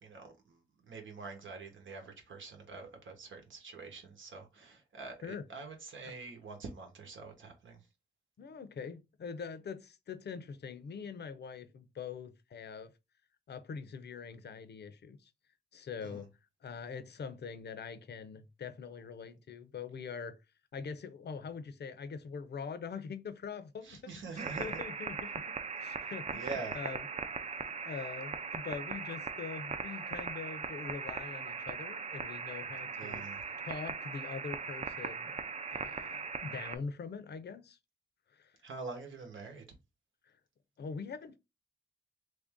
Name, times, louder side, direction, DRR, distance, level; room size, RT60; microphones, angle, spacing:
voice 1, 0.0-7.8 16.0-16.2 23.8-24.7 26.0-26.8 33.0-33.4 38.6-39.6, right 4 dB, 90° right, 1.1 m, -45 dB
voice 2, 8.4-12.9 13.5-15.3 15.7-16.3 16.6-20.4 20.7-27.1 27.5-33.2 33.6-35.4 35.7-37.8 38.3-38.6 40.3-40.4 40.8-41.4, left 5 dB, 60° left, 0.5 m, -43 dB
sound 1, 24.4-36.8, right 5 dB, 35° right, 0.4 m, -39 dB
3.3 x 2.6 x 3.5 m
wide cardioid pair, 120°, 19 cm